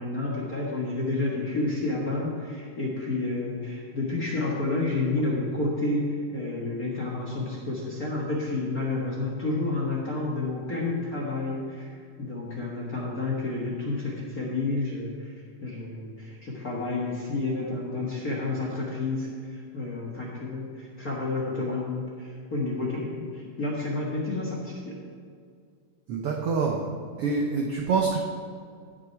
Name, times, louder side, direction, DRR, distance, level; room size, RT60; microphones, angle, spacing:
voice 1, 0.0-11.9 12.2-15.3 15.6-25.0, left 2 dB, 45° left, -4 dB, 1.2 m, -30 dB
voice 2, 26.1-26.9 27.2-28.2, right 4 dB, 80° right, 1 dB, 1.3 m, -26 dB
16.5 x 6.2 x 4.6 m, 2.2 s
omnidirectional pair, 3.7 m